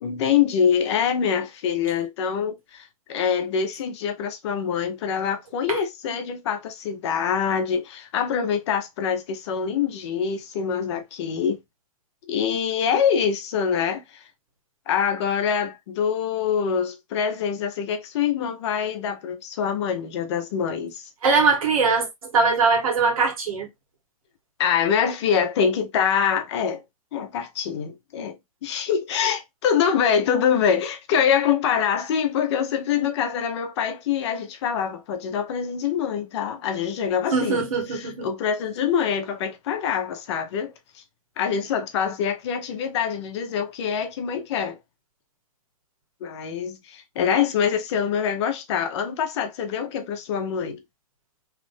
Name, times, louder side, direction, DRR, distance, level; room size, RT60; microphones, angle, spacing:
voice 1, 0.0-11.6 12.3-14.2 14.9-21.1 24.6-26.8 27.1-37.6 37.9-41.0 41.4-44.8 46.2-50.8, left 7 dB, 50° left, 0.9 m, -25 dB
voice 2, 21.2-23.7 37.3-38.3, right 4 dB, 75° right, 1.6 m, -21 dB
3.2 x 2.5 x 3.2 m
hypercardioid pair, 145°, 18 cm